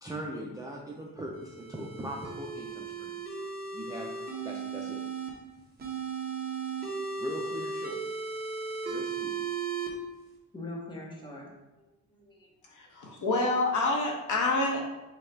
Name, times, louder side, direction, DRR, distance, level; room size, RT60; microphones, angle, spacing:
voice 1, 0.0-3.2 3.7-4.1 4.4-5.0 7.2-8.0 8.9-9.3, right 1 dB, 10° right, -2 dB, 0.3 m, -40 dB
sound 1, 1.4-5.3 5.8-9.9, right 5 dB, 25° right, 0.9 m, -36 dB
voice 2, 10.5-11.5 11.7-11.8 12.1-13.1, left 2 dB, 10° left, -2 dB, 0.9 m, -43 dB
voice 3, 12.7-14.9, left 2 dB, 55° left, 0 dB, 1.0 m, -27 dB
5.2 x 2.3 x 4.4 m, 1.0 s
cardioid pair, 145°, 37 cm